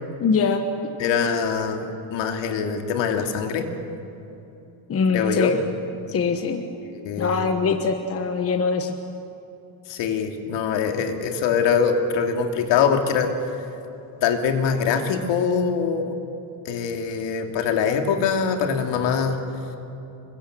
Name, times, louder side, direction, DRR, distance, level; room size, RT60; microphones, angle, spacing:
voice 1, 0.2-0.6 4.9-5.6 6.1-6.6 7.2-8.9, left 5 dB, 30° left, 6 dB, 1.3 m, -22 dB
voice 2, 1.0-3.6 5.1-5.5 6.9-7.4 9.9-13.3 14.2-16.1 16.6-19.4, left 6 dB, 60° left, 4 dB, 2.9 m, -23 dB
28.0 x 23.5 x 7.8 m, 2.8 s
cardioid pair, 165°, 49 cm